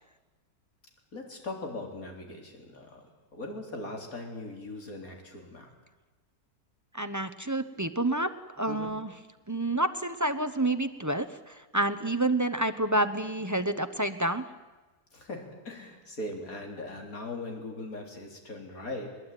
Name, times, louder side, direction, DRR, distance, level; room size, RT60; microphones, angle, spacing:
voice 1, 1.1-3.1 3.3-5.7 8.7-8.9 15.1-19.2, left 2 dB, 60° left, 2 dB, 4.1 m, -40 dB
voice 2, 6.9-8.3 8.6-9.1 9.5-11.3 11.7-14.4, right 1 dB, 20° right, 11 dB, 0.6 m, -28 dB
21.5 x 21.0 x 9.2 m, 1.2 s
omnidirectional pair, 1.7 m